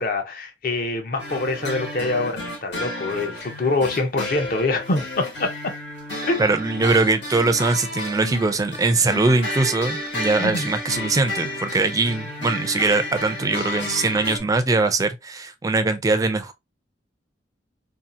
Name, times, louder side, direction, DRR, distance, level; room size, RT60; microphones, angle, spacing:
voice 1, 0.0-5.7 6.3-6.4 10.4-10.7, left 2 dB, 55° left, 0.6 m, -25 dB
sound 1, 1.2-14.4, left 1 dB, 80° left, 1.3 m, -32 dB
voice 2, 6.4-16.5, right 3 dB, 20° right, 0.3 m, -21 dB
2.7 x 2.3 x 2.5 m
head